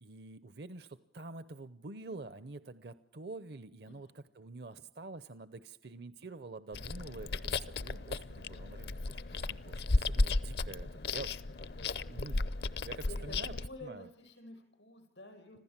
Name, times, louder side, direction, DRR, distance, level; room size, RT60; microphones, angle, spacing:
voice 1, 0.0-11.3 12.1-12.5 12.8-13.5 13.8-14.1, right 3 dB, 65° right, 13 dB, 0.7 m, -47 dB
Chewing mastication, 6.7-13.7, left 2 dB, 65° left, 0.7 m, -34 dB
voice 2, 11.8-12.3 13.1-15.6, left 1 dB, 85° left, 5 dB, 7.3 m, -51 dB
26.5 x 15.5 x 7.4 m, 0.87 s
head